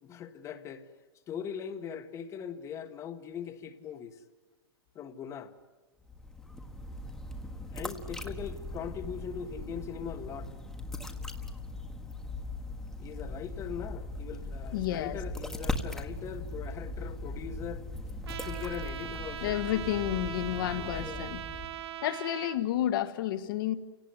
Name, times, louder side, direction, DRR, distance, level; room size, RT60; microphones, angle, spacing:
voice 1, 0.0-0.8 1.3-4.2 4.9-5.5 7.7-10.5 13.0-17.9 18.4-19.8 20.8-21.3, left 8 dB, 20° left, 9 dB, 1.4 m, -41 dB
sound 1, 6.0-21.9, left 2 dB, 5° left, 1.5 m, -39 dB
voice 2, 14.7-15.2 19.4-21.4 22.0-23.7, left 12 dB, 55° left, 11 dB, 1.6 m, -31 dB
Trumpet, 18.3-22.6, right 12 dB, 80° right, 1.3 m, -41 dB
28.5 x 18.0 x 9.8 m, 1.2 s
hypercardioid pair, 150°, 13 cm